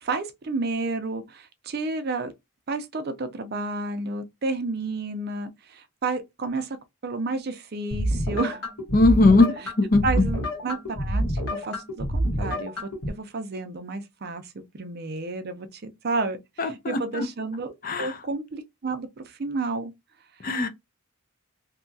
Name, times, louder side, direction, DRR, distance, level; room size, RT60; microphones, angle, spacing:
voice 1, 0.0-2.3 2.7-6.8 7.0-8.6 9.6-9.7 10.0-19.9, right 3 dB, 45° right, 0.5 m, -31 dB
sound 1, 7.9-13.1, equal, 75° left, 1.2 m, -28 dB
voice 2, 8.9-9.5 9.8-10.0 16.6-17.2 17.8-18.1 20.4-20.7, left 2 dB, 40° left, 0.4 m, -19 dB
2.8 x 2.3 x 2.6 m
head